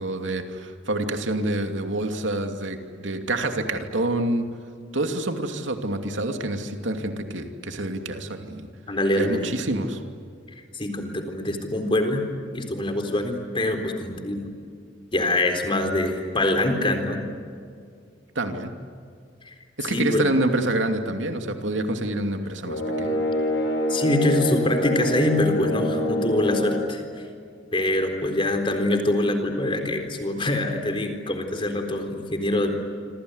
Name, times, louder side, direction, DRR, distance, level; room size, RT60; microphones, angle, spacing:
voice 1, 0.0-4.4 4.9-8.7 9.2-10.0 18.3-18.7 19.8-23.2, right 1 dB, 90° right, 5 dB, 2.7 m, -27 dB
voice 2, 8.9-9.4 10.7-12.2 12.5-14.4 15.1-17.3 19.5-19.6 19.9-20.2 23.9-27.0 27.7-32.7, left 1 dB, 30° left, 5 dB, 4.0 m, -24 dB
sound 1, 22.6-26.9, left 1 dB, 90° left, 7.7 m, -25 dB
27.0 x 27.0 x 8.2 m, 2.2 s
head